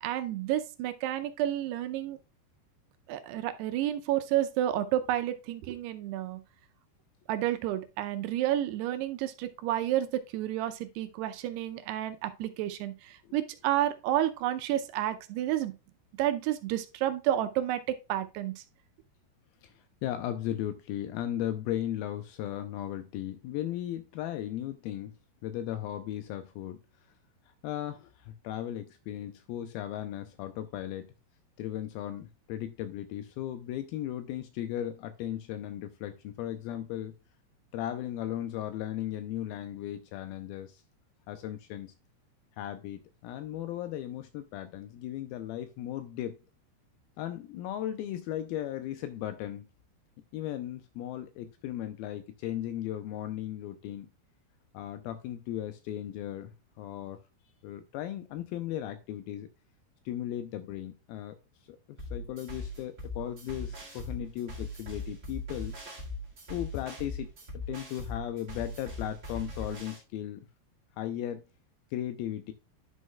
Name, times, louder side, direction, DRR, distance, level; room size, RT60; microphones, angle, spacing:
voice 1, 0.0-2.2 3.1-6.4 7.3-15.7 16.2-18.5, right 12 dB, 80° right, 9 dB, 2.7 m, -30 dB
voice 2, 19.6-25.1 25.4-26.8 27.6-31.1 31.6-37.1 37.7-40.8 41.3-41.9 42.6-46.4 47.2-49.7 50.3-54.1 54.7-57.2 57.6-59.5 60.1-61.4 61.7-65.8 66.5-70.5 71.0-71.4 71.9-72.5, left 12 dB, 85° left, 9 dB, 2.1 m, -36 dB
sound 1, 62.0-70.0, left 2 dB, 40° right, 1.0 m, -40 dB
11.0 x 6.4 x 2.3 m, 0.29 s
omnidirectional pair, 4.8 m